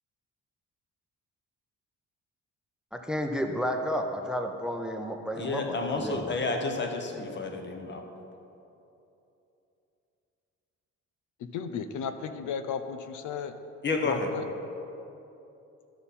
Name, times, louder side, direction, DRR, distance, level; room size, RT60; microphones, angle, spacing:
voice 1, 2.9-6.5 7.2-7.3, equal, ahead, 4 dB, 0.6 m, -32 dB
voice 2, 5.4-8.0 13.8-14.3, left 3 dB, 35° left, 4 dB, 1.1 m, -30 dB
voice 3, 11.4-13.5 14.0-14.5, left 6 dB, 80° left, 10 dB, 0.6 m, -34 dB
12.5 x 5.7 x 4.2 m, 2.9 s
cardioid pair, 90°, 30 cm